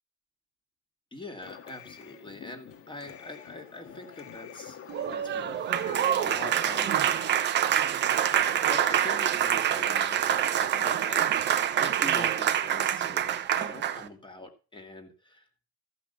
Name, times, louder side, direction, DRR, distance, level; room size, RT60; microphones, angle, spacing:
voice 1, 1.1-7.1 8.3-11.3 11.8-15.5, left 2 dB, 10° left, 5 dB, 2.4 m, -43 dB
sound 1, 1.4-7.3, left 8 dB, 25° left, 1.7 m, -46 dB
Applause, 4.9-14.1, right 10 dB, 20° right, 1.0 m, -26 dB
15.0 x 5.9 x 6.8 m, 0.35 s
supercardioid pair, 130°, 48 cm